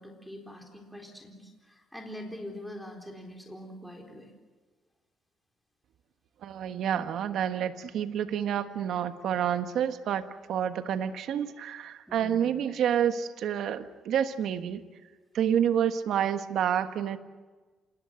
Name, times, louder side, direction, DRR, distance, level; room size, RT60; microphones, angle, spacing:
voice 1, 0.0-4.3 12.1-12.5, left 1 dB, ahead, 1 dB, 4.1 m, -44 dB
voice 2, 6.4-14.8 15.3-17.2, right 9 dB, 75° right, 9 dB, 1.4 m, -29 dB
27.0 x 20.0 x 7.8 m, 1.3 s
cardioid pair, 95°, 0 cm